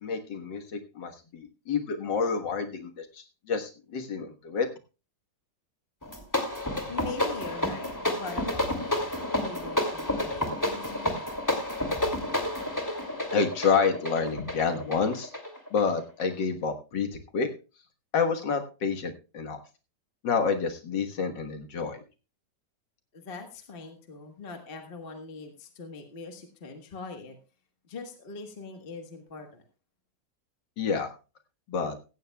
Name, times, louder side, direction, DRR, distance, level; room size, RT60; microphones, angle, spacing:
voice 1, 0.0-4.7 13.3-15.3 15.7-17.1 17.3-17.5 18.1-19.6 20.2-22.0 30.8-31.1 31.7-32.0, left 5 dB, 80° left, 5 dB, 2.1 m, -28 dB
sound 1, 6.0-16.3, left 1 dB, 10° left, 2.4 m, -30 dB
voice 2, 6.9-9.1 9.4-11.1 23.1-27.4 27.9-29.6, left 3 dB, 35° left, 5 dB, 1.5 m, -42 dB
16.5 x 14.5 x 2.3 m, 0.32 s
omnidirectional pair, 1.9 m